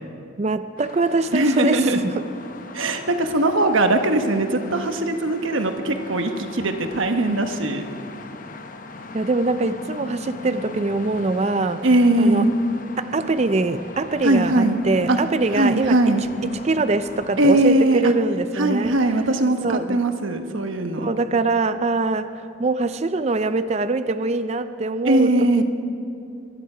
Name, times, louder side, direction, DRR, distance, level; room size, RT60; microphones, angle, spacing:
voice 1, 0.4-2.3 9.1-11.8 12.2-12.5 13.0-16.0 16.5-18.9 19.6-20.0 21.0-25.6, right 3 dB, 35° right, 11 dB, 0.4 m, -23 dB
sound 1, 0.8-17.6, left 3 dB, 40° left, 0.8 m, -39 dB
voice 2, 1.3-2.0 2.7-7.8 11.8-12.5 14.2-14.8 15.1-15.2 15.6-16.2 17.4-18.1 18.6-21.1 25.0-25.6, right 1 dB, 80° right, 6 dB, 1.1 m, -20 dB
24.0 x 11.5 x 5.0 m, 2.6 s
head